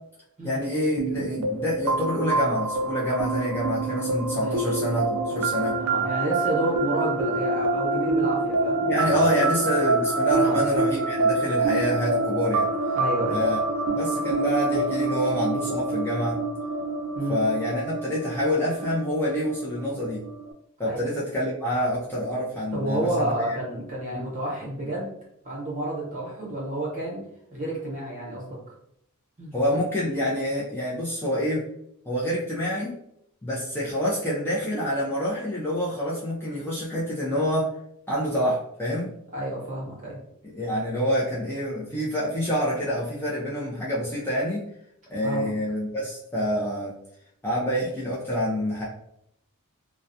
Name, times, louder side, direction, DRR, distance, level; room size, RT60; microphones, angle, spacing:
voice 1, 0.4-5.8 8.2-8.3 8.9-12.7 13.3-13.6 13.9-16.4 17.3-20.2 20.8-23.6 24.1-24.2 29.5-31.6 32.1-32.9 33.4-37.7 38.1-39.1 40.5-44.6 45.1-46.9 47.4-48.8, equal, 10° left, -7 dB, 0.4 m, -27 dB
sound 1, 1.0-20.5, right 3 dB, 80° right, 0.4 m, -26 dB
voice 2, 5.8-9.3 10.3-10.6 12.9-13.4 17.1-17.4 20.9-21.0 22.7-25.1 25.4-27.2 27.5-28.6 29.4-29.6 39.3-40.2 45.2-45.5, right 1 dB, 35° right, -4 dB, 0.9 m, -30 dB
2.3 x 2.1 x 2.6 m, 0.74 s
head